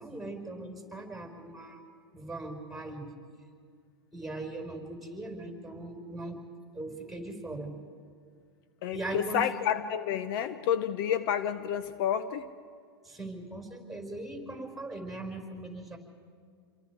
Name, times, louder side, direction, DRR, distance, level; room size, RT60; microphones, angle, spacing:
voice 1, 0.0-1.8 2.1-3.1 4.1-6.4 6.7-7.7 8.9-9.4 13.0-16.0, right 2 dB, ahead, 3 dB, 4.6 m, -39 dB
voice 2, 8.8-12.5, left 9 dB, 55° left, 12 dB, 0.9 m, -30 dB
28.0 x 23.0 x 4.7 m, 2.2 s
hypercardioid pair, 120°, 14 cm